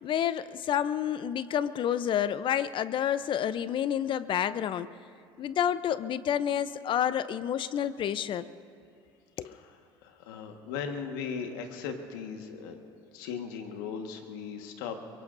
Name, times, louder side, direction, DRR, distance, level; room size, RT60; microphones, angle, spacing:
voice 1, 0.0-4.9 5.4-8.5 9.4-9.6, left 9 dB, 50° left, 15 dB, 0.6 m, -29 dB
voice 2, 10.0-12.8 13.1-15.0, left 6 dB, 85° left, 4 dB, 1.6 m, -38 dB
23.0 x 23.0 x 2.7 m, 2.4 s
supercardioid pair, 85°, 11 cm